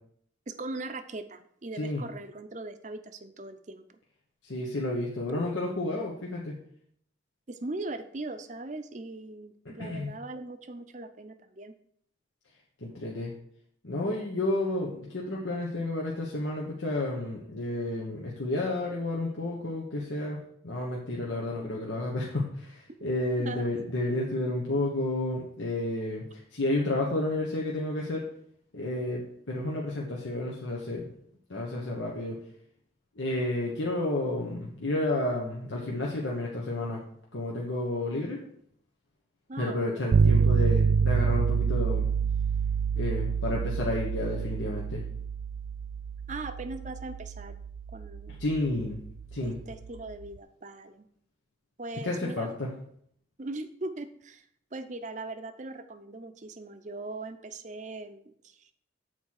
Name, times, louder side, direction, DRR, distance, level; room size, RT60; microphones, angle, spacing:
voice 1, 0.5-4.0 7.5-11.7 23.4-23.7 39.5-40.0 46.3-47.6 47.9-48.4 49.4-51.1 51.8-52.5 53.4-54.4 54.7-58.7, right 2 dB, 40° right, 10 dB, 0.6 m, -40 dB
voice 2, 4.4-6.6 9.6-10.1 12.8-13.3 13.8-20.4 20.6-28.2 28.7-31.1 31.5-32.4 33.2-37.0 37.3-38.4 39.6-42.1 42.9-45.0 48.4-49.0 49.3-49.6 52.0-52.7, left 2 dB, 85° left, -3 dB, 1.3 m, -31 dB
sound 1, 40.1-50.0, right 6 dB, 85° right, 0.4 m, -27 dB
8.0 x 4.5 x 6.4 m, 0.66 s
head